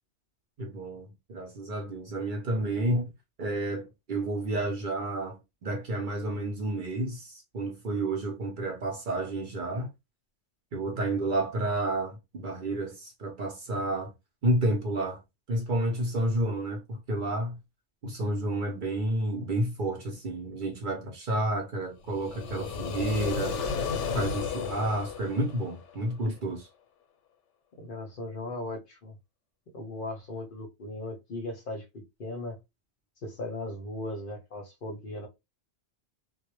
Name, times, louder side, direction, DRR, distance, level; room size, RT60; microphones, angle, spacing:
voice 1, 0.6-3.1 3.4-9.9 10.7-14.1 14.4-15.2 15.5-17.6 18.0-23.6 24.1-26.7, right 1 dB, 55° right, 0.7 m, -30 dB
sound 1, 22.1-26.1, left 5 dB, 85° left, 0.9 m, -33 dB
voice 2, 27.8-29.1 29.7-32.6 33.2-35.3, left 2 dB, 55° left, 0.7 m, -38 dB
2.1 x 2.1 x 2.9 m
omnidirectional pair, 1.2 m